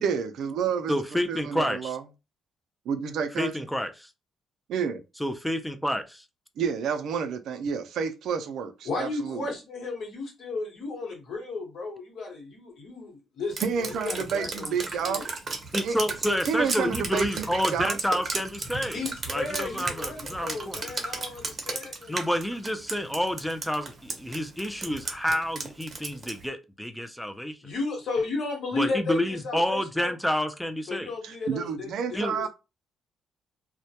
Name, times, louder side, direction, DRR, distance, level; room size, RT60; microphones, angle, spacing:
voice 1, 0.0-0.9 1.3-2.0 2.9-3.7 4.7-5.0 6.6-9.5 13.6-15.3 15.8-16.0 16.5-18.0 31.2-32.5, right 6 dB, 75° right, 0.4 m, -30 dB
voice 2, 0.9-2.0 3.4-4.1 5.2-6.2 15.7-20.8 22.1-27.6 28.7-31.1 32.1-32.3, equal, 5° left, 0.3 m, -29 dB
voice 3, 8.8-14.7 15.0-15.3 18.9-22.2 27.6-30.1 30.9-32.5, left 3 dB, 70° left, 1.1 m, -34 dB
Drip, 13.5-26.4, right 3 dB, 40° right, 0.6 m, -35 dB
2.1 x 2.1 x 2.7 m
cardioid pair, 90°, 0 cm